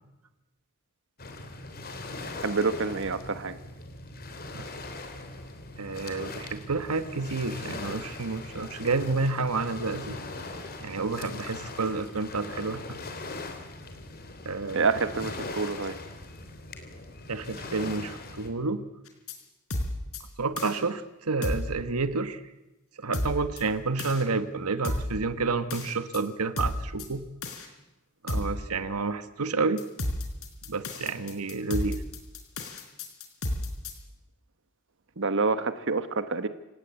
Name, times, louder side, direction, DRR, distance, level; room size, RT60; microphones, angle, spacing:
Waves surf, 1.2-18.5, left 2 dB, 45° left, 3.6 m, -40 dB
voice 1, 2.4-3.6 14.7-16.0 35.2-36.5, right 4 dB, 60° right, 11 dB, 1.2 m, -27 dB
voice 2, 5.8-10.2 10.8-13.0 14.4-15.0 17.3-18.8 20.4-22.4 23.0-27.2 28.2-29.8 30.7-32.0, right 3 dB, 85° right, 12 dB, 1.3 m, -30 dB
sound 1, 19.1-19.3 19.7-20.2 20.6-20.8 21.4-21.7 23.1-23.6 24.0-24.2 24.8-25.2 25.7-26.2 26.6-27.0 27.4-27.7 28.3-28.6 29.8-33.9, left 1 dB, 70° left, 4.4 m, -32 dB
28.5 x 18.0 x 8.2 m, 1.0 s
head